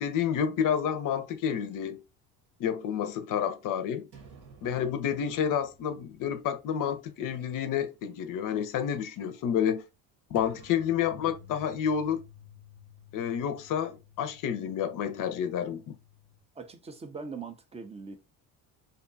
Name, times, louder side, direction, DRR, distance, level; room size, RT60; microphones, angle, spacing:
voice 1, 0.0-2.0 2.6-4.1 4.6-9.8 10.3-12.2 13.1-16.0, left 8 dB, 50° left, 0.5 m, -29 dB
sound 1, 4.1-7.3 7.6-7.7 10.4-16.4, left 2 dB, 70° right, 1.0 m, -53 dB
voice 2, 16.6-18.2, right 4 dB, 15° right, 0.3 m, -41 dB
2.6 x 2.2 x 2.5 m
supercardioid pair, 90°, 40 cm